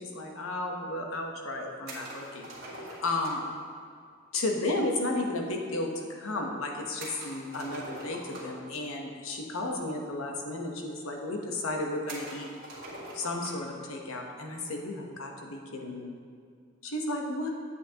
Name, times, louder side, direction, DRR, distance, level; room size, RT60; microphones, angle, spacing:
voice 1, 0.0-2.5 3.0-3.4 4.3-12.5 13.1-16.1 16.8-17.5, left 2 dB, 85° left, 1 dB, 1.0 m, -33 dB
sound 1, 1.9-3.6 7.0-8.7 9.8-9.9 10.1-10.2 11.0-11.1 12.1-13.7, right 1 dB, 50° right, 1.8 m, -43 dB
9.1 x 8.1 x 2.9 m, 2.1 s
head